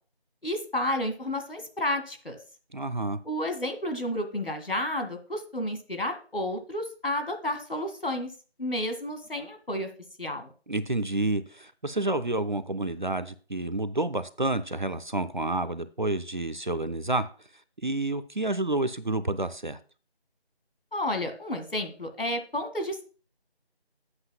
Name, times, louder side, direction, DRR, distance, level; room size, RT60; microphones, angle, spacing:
voice 1, 0.4-2.4 3.3-8.3 8.6-9.9 10.2-10.5 20.9-23.0, left 1 dB, 60° left, 2.0 m, -31 dB
voice 2, 2.7-3.2 10.7-17.3 17.8-19.8, right 2 dB, 50° right, 0.6 m, -29 dB
11.5 x 8.0 x 2.2 m
figure-of-eight pair, 170°, 31 cm